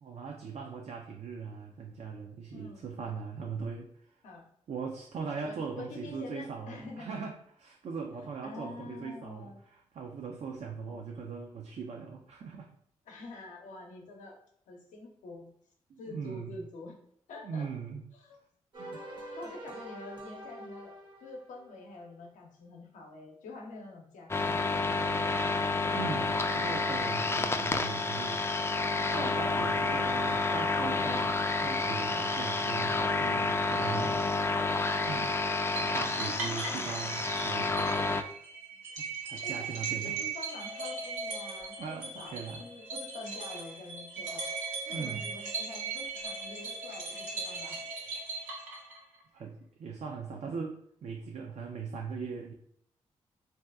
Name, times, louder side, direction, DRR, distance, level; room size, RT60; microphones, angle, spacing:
voice 1, 0.0-3.9 4.7-7.3 7.6-12.7 15.9-16.7 17.4-18.0 18.8-19.0 25.9-28.4 29.1-34.1 35.1-35.3 35.8-38.0 39.0-40.2 41.8-42.6 44.9-45.2 49.3-52.5, right 5 dB, 60° right, 1 dB, 0.4 m, -40 dB
voice 2, 2.5-2.9 4.2-4.4 5.4-7.3 8.4-9.6 10.9-11.0 13.1-14.4 14.7-15.5 16.0-17.0 17.3-17.7 18.1-18.4 19.4-20.9 21.2-24.7 36.4-36.9 39.4-41.8 42.0-42.3 42.6-44.4 44.9-47.8, left 2 dB, 85° left, 0 dB, 0.6 m, -46 dB
sound 1, 18.7-22.0, right 1 dB, 40° right, 0.8 m, -45 dB
sound 2, 24.3-38.2, left 3 dB, 20° left, 0.3 m, -29 dB
sound 3, 35.8-49.2, right 4 dB, 85° right, 0.9 m, -38 dB
2.7 x 2.2 x 3.4 m, 0.65 s
supercardioid pair, 45°, 13 cm